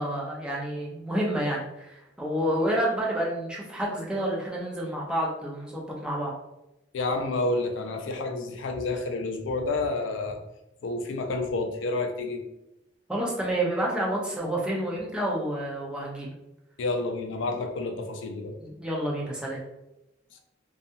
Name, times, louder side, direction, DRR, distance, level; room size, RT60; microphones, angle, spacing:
voice 1, 0.0-6.3 13.1-16.4 18.6-19.6, right 1 dB, 5° right, -4 dB, 0.6 m, -29 dB
voice 2, 6.9-10.4 10.8-12.4 16.8-18.6 20.3-20.4, left 2 dB, 75° left, 4 dB, 0.4 m, -29 dB
2.7 x 2.3 x 2.6 m, 0.89 s
head